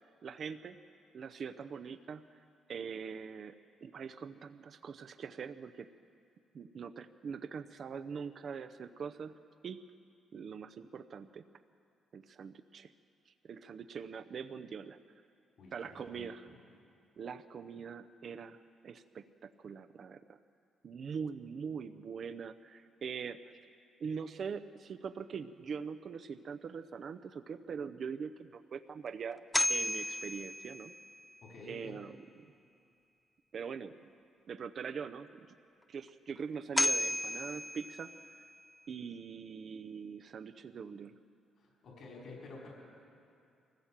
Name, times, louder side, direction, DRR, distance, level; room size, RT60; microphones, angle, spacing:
voice 1, 0.2-0.8 1.1-2.4 2.7-3.5 3.8-5.9 6.5-9.4 9.6-9.9 10.3-11.4 12.1-12.9 13.3-15.0 15.7-16.5 17.2-18.6 18.8-20.4 20.8-23.6 24.0-30.9 31.7-32.2 33.5-34.1 34.5-35.5 35.9-38.1 38.9-41.2, right 6 dB, 55° right, 10 dB, 0.6 m, -43 dB
voice 2, 15.6-16.6 31.4-32.0 41.6-42.7, left 3 dB, 65° left, -2 dB, 4.8 m, -50 dB
sound 1, 29.3-31.4 36.4-36.5 36.8-38.7, left 1 dB, 10° left, 0.5 m, -34 dB
23.0 x 15.5 x 7.4 m, 2.5 s
cardioid pair, 90°, 0 cm